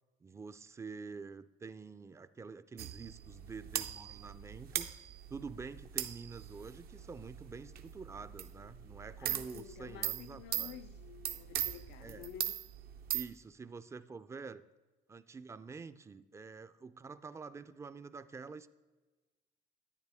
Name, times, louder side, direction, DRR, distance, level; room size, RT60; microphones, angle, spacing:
voice 1, 0.2-4.9 5.3-10.8 12.0-12.3 13.1-14.6 15.1-18.7, right 4 dB, 15° right, 0.3 m, -47 dB
sound 1, 2.8-13.2, right 11 dB, 65° right, 0.6 m, -41 dB
voice 2, 9.2-12.7, left 11 dB, 85° left, 0.4 m, -51 dB
10.5 x 9.2 x 3.5 m
cardioid pair, 110°, 17 cm